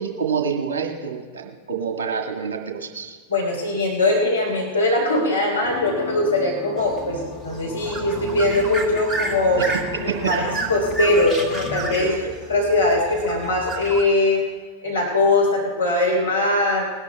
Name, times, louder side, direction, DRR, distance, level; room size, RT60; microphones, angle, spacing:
voice 1, 0.0-3.2 9.6-9.7 10.1-10.4 12.0-12.1, right 6 dB, 60° right, 3 dB, 1.6 m, -27 dB
voice 2, 3.3-9.6 10.3-12.1 12.5-14.4 14.8-16.9, left 2 dB, 75° left, -2 dB, 3.0 m, -21 dB
sound 1, 5.6-11.9, left 4 dB, 35° left, 1.2 m, -34 dB
sound 2, 6.8-14.0, right 2 dB, 10° right, 1.8 m, -32 dB
20.0 x 11.5 x 3.3 m, 1.6 s
figure-of-eight pair, 90°, 0 cm